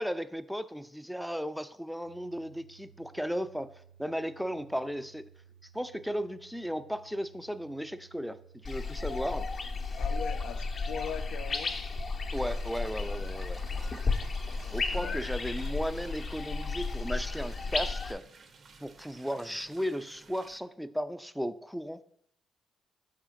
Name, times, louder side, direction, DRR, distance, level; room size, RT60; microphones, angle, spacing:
voice 1, 0.0-5.3 5.7-8.4 8.6-9.5 12.3-13.6 14.7-18.2 18.8-22.0, equal, ahead, 12 dB, 0.3 m, -35 dB
Domestic sounds home sounds, 2.0-19.0, right 7 dB, 90° right, 1.2 m, -59 dB
sound 1, 8.6-18.1, left 4 dB, 45° left, 0.7 m, -33 dB
voice 2, 10.0-11.7 14.6-15.2, left 7 dB, 85° left, 8 dB, 0.5 m, -41 dB
sound 2, 12.3-20.6, right 4 dB, 50° right, 0.5 m, -55 dB
5.6 x 3.7 x 5.0 m, 0.68 s
cardioid pair, 90°, 0 cm